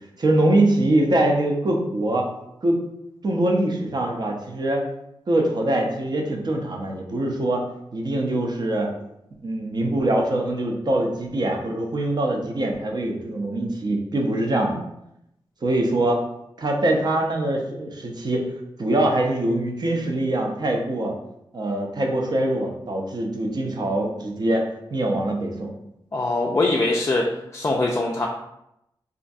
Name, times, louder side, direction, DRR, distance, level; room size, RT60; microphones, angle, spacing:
voice 1, 0.2-2.3 2.6-2.8 3.2-4.8 5.3-7.7 7.9-8.9 9.4-14.8 15.6-16.2 16.6-18.5 18.8-21.1 21.5-25.7, right 1 dB, 50° right, 1 dB, 0.5 m, -23 dB
voice 2, 26.1-27.2 27.5-28.3, left 2 dB, 30° left, -1 dB, 0.3 m, -22 dB
2.4 x 2.1 x 2.6 m, 0.82 s
cardioid pair, 50°, 9 cm